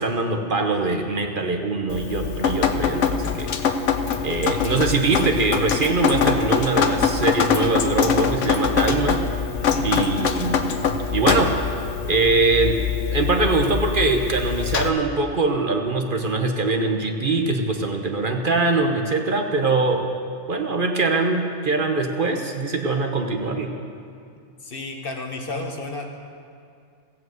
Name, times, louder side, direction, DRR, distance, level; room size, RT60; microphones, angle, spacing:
voice 1, 0.0-3.7 4.2-9.2 9.8-10.7 11.1-11.5 12.0-12.8 13.1-20.1 20.5-23.7, right 3 dB, 50° right, 3 dB, 1.1 m, -22 dB
Drip, 1.9-14.9, left 6 dB, 85° left, 1.1 m, -23 dB
voice 2, 9.5-9.9 24.6-26.2, left 2 dB, 50° left, 2 dB, 1.3 m, -32 dB
15.0 x 7.8 x 7.9 m, 2.4 s
omnidirectional pair, 1.2 m